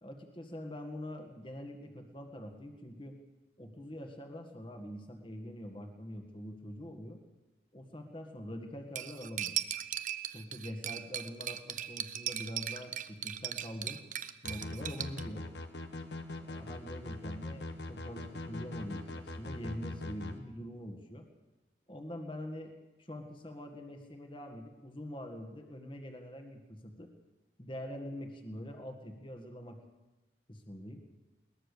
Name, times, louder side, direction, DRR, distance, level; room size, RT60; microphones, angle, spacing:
voice 1, 0.0-3.2 3.6-7.2 7.7-9.6 10.3-14.0 14.4-15.5 16.4-21.3 21.9-27.1 27.6-29.8 30.5-31.0, equal, 25° left, 4 dB, 1.8 m, -44 dB
Cutlery silverware, 8.9-15.2, right 11 dB, 45° right, 0.8 m, -38 dB
sound 1, 14.4-20.4, left 2 dB, 70° left, 1.7 m, -41 dB
21.5 x 20.0 x 6.8 m, 1.0 s
head